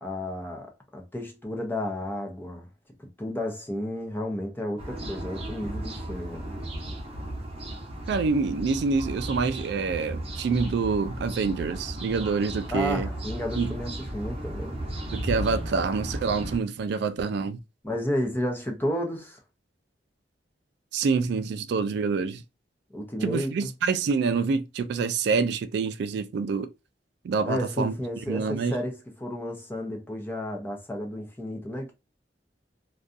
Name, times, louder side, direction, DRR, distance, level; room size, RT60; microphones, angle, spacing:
voice 1, 0.0-2.7 3.0-6.5 12.7-14.8 17.8-19.4 22.9-23.7 27.5-31.9, left 1 dB, 10° left, 0.6 m, -32 dB
sound 1, 4.8-16.6, right 1 dB, 35° right, 0.7 m, -35 dB
voice 2, 8.1-13.1 13.6-13.7 15.1-17.6 20.9-22.4 23.2-26.7 27.2-27.9 28.3-28.8, right 4 dB, 65° right, 0.3 m, -26 dB
2.6 x 2.3 x 2.4 m
head